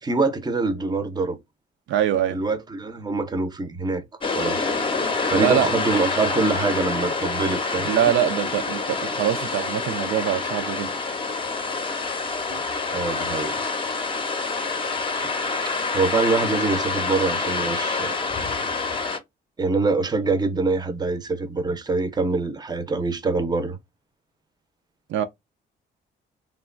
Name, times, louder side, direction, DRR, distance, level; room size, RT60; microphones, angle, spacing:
voice 1, 0.0-1.4 2.3-4.0 4.3-4.7 5.3-8.0 12.9-13.6 15.9-18.2 19.6-23.8, right 3 dB, 20° right, 0.6 m, -24 dB
voice 2, 1.9-2.4 5.4-5.7 7.8-10.9 12.5-12.6 25.1-25.2, right 10 dB, 75° right, 0.4 m, -23 dB
sound 1, 4.2-19.2, left 4 dB, 25° left, 0.6 m, -27 dB
3.0 x 2.2 x 2.4 m
cardioid pair, 90°, 20 cm